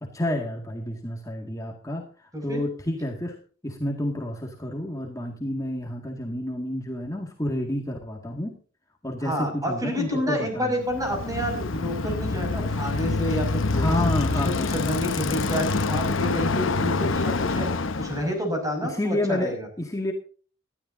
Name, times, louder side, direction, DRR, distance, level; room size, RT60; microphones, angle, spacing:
voice 1, 0.0-3.4 3.6-8.6 9.0-10.8 13.7-14.8 18.8-20.1, left 1 dB, 20° left, 0 dB, 2.0 m, -30 dB
voice 2, 9.2-14.2 14.4-17.7 18.0-19.7, equal, 20° right, 3 dB, 6.1 m, -29 dB
Bicycle, 10.8-18.3, left 3 dB, 85° left, 1.0 m, -26 dB
20.5 x 13.0 x 2.7 m, 0.40 s
head